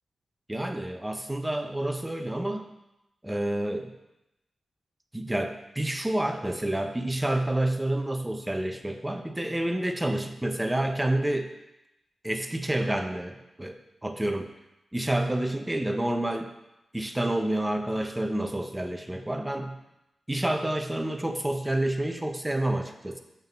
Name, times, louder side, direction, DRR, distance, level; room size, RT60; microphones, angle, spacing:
voice 1, 0.5-2.7 3.2-3.9 5.1-11.5 12.2-14.5 14.9-16.5 16.9-19.8 20.3-23.2, right 1 dB, 10° right, 6 dB, 0.5 m, -29 dB
8.9 x 3.4 x 4.0 m, 0.91 s
wide cardioid pair, 145°, 0 cm